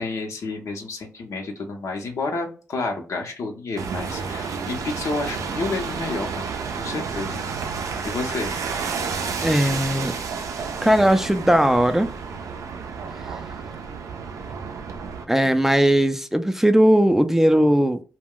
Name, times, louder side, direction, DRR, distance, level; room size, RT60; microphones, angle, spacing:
voice 1, 0.0-6.5 6.8-7.4 8.0-8.5, left 3 dB, 70° left, 0.6 m, -30 dB
sound 1, 3.8-15.2, right 5 dB, 75° right, 0.4 m, -30 dB
voice 2, 9.4-10.1 10.8-12.1 15.3-18.0, equal, 5° right, 0.4 m, -18 dB
2.2 x 2.1 x 3.6 m
supercardioid pair, 45°, 6 cm